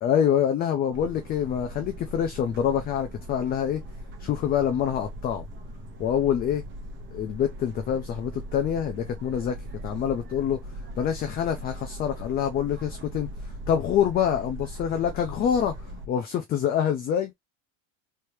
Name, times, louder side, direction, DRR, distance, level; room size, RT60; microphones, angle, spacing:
voice 1, 0.0-3.8 4.2-5.5 6.0-6.6 7.1-9.6 9.8-10.6 11.0-13.3 13.7-15.7 16.1-17.3, left 9 dB, 25° left, 0.4 m, -26 dB
sound 1, 0.9-16.1, equal, 25° right, 1.0 m, -40 dB
3.2 x 3.2 x 3.0 m
cardioid pair, 160°, 43 cm